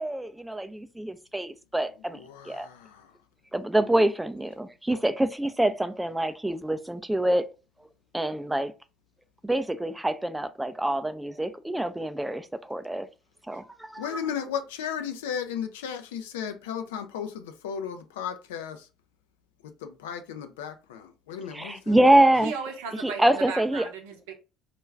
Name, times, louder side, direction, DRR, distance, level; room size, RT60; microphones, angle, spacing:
voice 1, 0.0-2.7 3.5-7.5 8.1-8.7 9.4-13.1 13.5-14.2 21.5-22.5 23.0-23.8, right 1 dB, 10° right, 0.4 m, -25 dB
voice 2, 2.3-3.0 14.0-18.8 19.8-21.9, left 8 dB, 85° left, 0.3 m, -35 dB
voice 3, 22.4-24.3, right 6 dB, 85° right, 0.6 m, -36 dB
2.4 x 2.2 x 3.1 m
hypercardioid pair, 65°, 0 cm